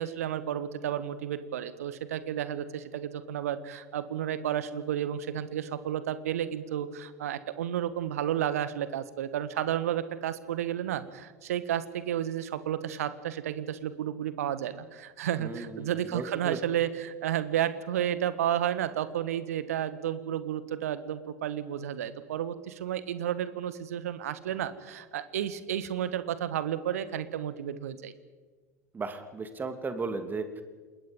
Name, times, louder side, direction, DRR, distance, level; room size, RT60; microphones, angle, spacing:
voice 1, 0.0-28.1, right 10 dB, 65° right, 14 dB, 1.4 m, -32 dB
voice 2, 15.4-16.6 28.9-30.6, right 4 dB, 20° right, 8 dB, 2.8 m, -35 dB
28.0 x 21.0 x 5.5 m, 1.4 s
figure-of-eight pair, 75°, 9 cm